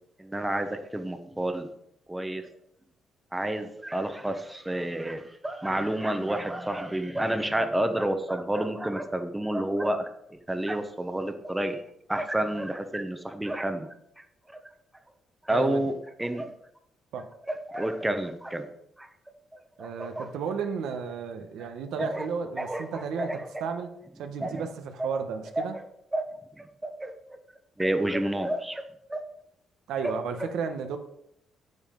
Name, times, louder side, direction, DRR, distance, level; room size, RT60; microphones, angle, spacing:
voice 1, 0.2-1.7 2.1-2.5 3.3-11.8 12.1-13.9 14.2-14.6 15.5-15.9 16.2-16.5 17.7-18.7 19.0-19.1 19.5-20.3 22.0-22.3 22.6-23.6 24.4-24.6 25.6-25.7 26.1-26.2 26.6-27.4 27.8-28.8 29.1-29.2 30.0-30.1, right 1 dB, 10° right, 7 dB, 0.9 m, -30 dB
voice 2, 15.5-15.9 17.1-17.3 19.8-23.3 23.6-23.9 24.2-25.7 29.9-31.0, right 6 dB, 85° right, 6 dB, 1.0 m, -33 dB
9.4 x 7.4 x 3.8 m, 0.75 s
cardioid pair, 90°, 0 cm